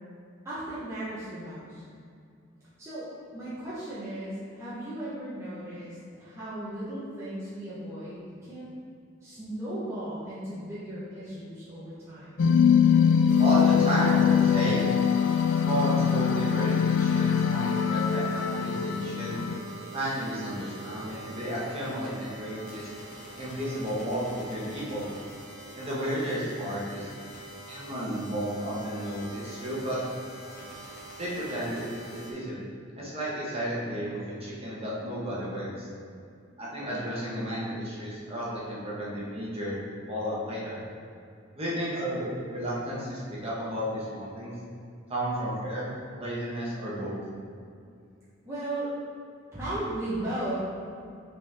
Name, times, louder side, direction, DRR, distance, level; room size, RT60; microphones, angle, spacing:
voice 1, 0.4-1.8 2.8-8.8 9.2-12.4 48.4-48.9 49.5-50.5, right 1 dB, 15° right, -12 dB, 1.1 m, -36 dB
sound 1, 12.4-19.6, left 7 dB, 65° left, 0.3 m, -23 dB
sound 2, 13.3-32.3, right 2 dB, 40° left, 1.2 m, -45 dB
voice 2, 13.4-14.8 15.6-19.4 19.9-22.9 23.4-25.1 25.8-27.1 27.7-30.0 31.2-32.6 33.0-35.9 36.6-39.8 40.1-40.8 41.5-44.5 45.1-47.2, equal, 30° right, -7 dB, 1.4 m, -32 dB
6.0 x 4.5 x 3.6 m, 2.4 s
head